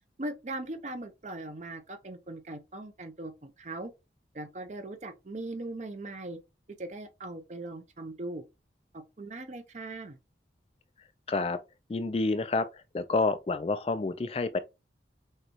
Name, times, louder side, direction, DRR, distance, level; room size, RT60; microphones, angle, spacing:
voice 1, 0.2-3.9 4.3-6.4 6.8-8.4 8.9-10.2, right 2 dB, 40° right, 0.6 m, -39 dB
voice 2, 11.3-11.6 11.9-12.7 12.9-14.6, left 3 dB, 35° left, 0.3 m, -28 dB
6.4 x 2.2 x 2.9 m
head